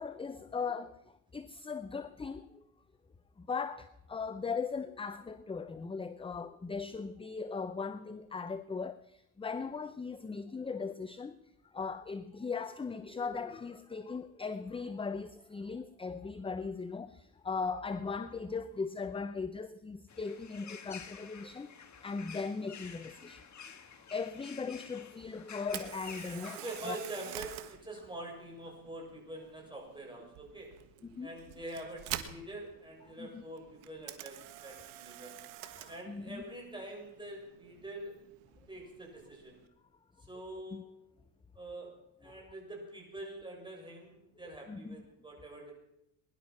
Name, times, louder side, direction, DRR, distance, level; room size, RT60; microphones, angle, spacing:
voice 1, 0.0-2.6 3.4-11.4 11.6-21.7 22.0-23.5 24.1-27.0 31.0-31.3 33.2-33.4 35.6-36.4 40.7-40.8 42.3-42.4 44.7-45.0, left 5 dB, 10° left, 0.5 m, -39 dB
sound 1, 20.1-26.8, left 7 dB, 35° left, 1.9 m, -50 dB
Camera, 25.6-39.7, right 13 dB, 85° right, 1.7 m, -48 dB
voice 2, 26.5-30.7 31.2-35.3 35.9-38.2 38.7-39.6 40.3-40.9 41.6-41.9 42.2-45.7, right 1 dB, 10° right, 7.0 m, -45 dB
21.0 x 11.5 x 6.0 m
cardioid pair, 105°, 47 cm